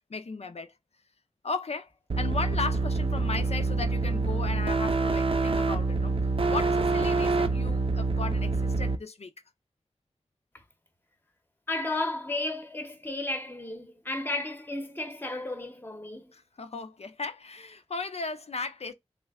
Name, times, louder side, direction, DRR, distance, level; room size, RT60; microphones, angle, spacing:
voice 1, 0.1-0.7 1.4-1.9 2.2-6.2 6.5-9.3 16.3-18.9, left 4 dB, 65° left, 0.5 m, -36 dB
sound 1, 2.1-9.0, right 3 dB, 55° right, 0.5 m, -26 dB
voice 2, 11.7-16.3, left 2 dB, 15° left, 0.8 m, -33 dB
3.2 x 2.2 x 3.5 m
wide cardioid pair, 45°, 11 cm